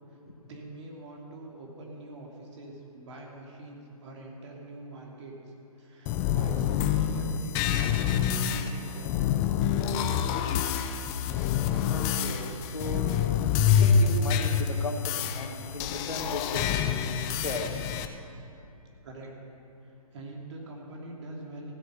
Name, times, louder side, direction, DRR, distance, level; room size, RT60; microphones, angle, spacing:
voice 1, 0.5-5.4 5.8-9.2 19.0-19.3 20.1-21.7, right 2 dB, 50° right, -1 dB, 2.9 m, -44 dB
sound 1, 6.1-18.1, left 8 dB, 20° left, 0.5 m, -27 dB
voice 2, 11.9-13.2 13.7-16.8 17.0-17.9, left 1 dB, 80° left, 3 dB, 1.8 m, -36 dB
15.5 x 9.2 x 6.7 m, 2.6 s
figure-of-eight pair, 135°, 19 cm